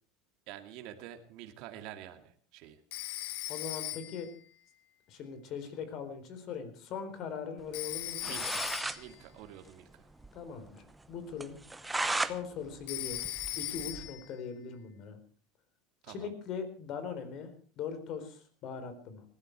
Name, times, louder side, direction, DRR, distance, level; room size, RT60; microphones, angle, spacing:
voice 1, 0.5-2.8 8.2-8.7 9.0-10.1 16.0-16.3, right 11 dB, 55° right, 6 dB, 2.3 m, -48 dB
Telephone, 2.9-4.3 7.7-9.1 12.9-14.3, left 17 dB, 75° left, 1.1 m, -38 dB
voice 2, 3.5-4.3 5.1-8.5 10.3-11.6 12.2-15.2 16.1-19.2, left 6 dB, 45° left, 10 dB, 4.2 m, -41 dB
sound 1, 7.9-8.0 8.2-9.0 9.3-9.4 9.7-9.8 10.2-10.3 10.7-10.8 11.4-12.4 12.7-14.1, right 2 dB, 5° right, 1.0 m, -35 dB
19.5 x 16.0 x 4.7 m, 0.41 s
supercardioid pair, 140°, 0 cm